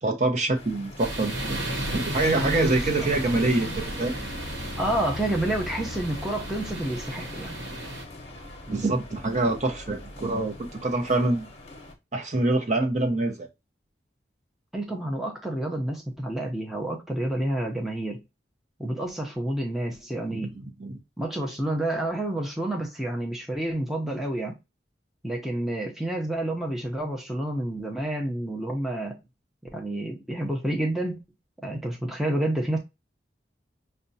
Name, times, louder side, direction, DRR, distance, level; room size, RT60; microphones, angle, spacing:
voice 1, 0.0-4.1 8.7-11.5 12.1-13.5 20.3-20.5 20.8-21.0, right 2 dB, 40° right, 0.7 m, -25 dB
sound 1, 0.5-11.9, left 1 dB, 35° left, 0.8 m, -39 dB
sound 2, 1.0-8.0, right 1 dB, 85° right, 1.1 m, -34 dB
voice 2, 2.3-3.1 4.8-7.5 14.7-18.2 18.8-20.6 21.2-24.6 25.2-29.2 29.7-31.2 31.6-32.8, right 1 dB, ahead, 0.6 m, -29 dB
5.8 x 2.2 x 2.6 m
head